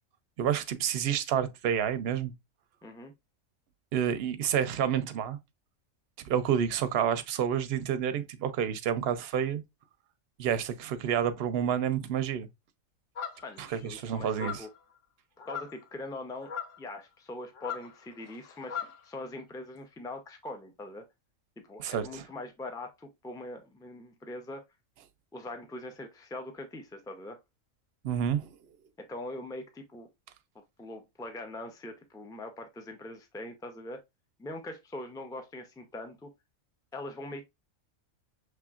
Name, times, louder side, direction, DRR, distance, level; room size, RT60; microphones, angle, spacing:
voice 1, 0.4-2.3 3.9-5.4 6.2-9.6 10.4-12.5 13.6-14.6 21.8-22.2 28.0-28.5, right 8 dB, 60° right, 0.7 m, -29 dB
voice 2, 2.8-3.1 13.4-14.7 15.4-16.5 16.8-21.0 21.7-24.6 25.3-27.4 29.0-30.1 30.8-34.0 34.4-36.3 36.9-37.4, left 2 dB, 5° left, 0.3 m, -42 dB
sound 1, 13.2-13.6 14.3-14.8 15.4-15.8 16.4-16.8 17.5-19.0, left 7 dB, 65° left, 1.0 m, -38 dB
5.8 x 3.2 x 2.4 m
omnidirectional pair, 1.4 m